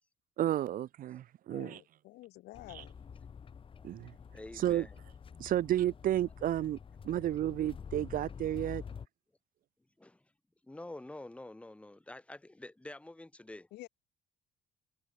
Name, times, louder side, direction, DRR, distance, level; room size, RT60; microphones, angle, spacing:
voice 1, 0.4-1.8 2.7-2.8 3.8-4.1 4.5-4.9 5.4-6.8 7.0-8.8, right 12 dB, 55° right, 0.7 m, -32 dB
voice 2, 1.5-2.9 13.7-13.9, left 18 dB, 80° left, 2.4 m, -50 dB
sound 1, 2.5-9.1, left 6 dB, 30° left, 1.1 m, -48 dB
voice 3, 4.3-4.9 10.0-10.2 10.6-13.7, left 2 dB, 5° left, 1.4 m, -47 dB
cardioid pair, 110°, 17 cm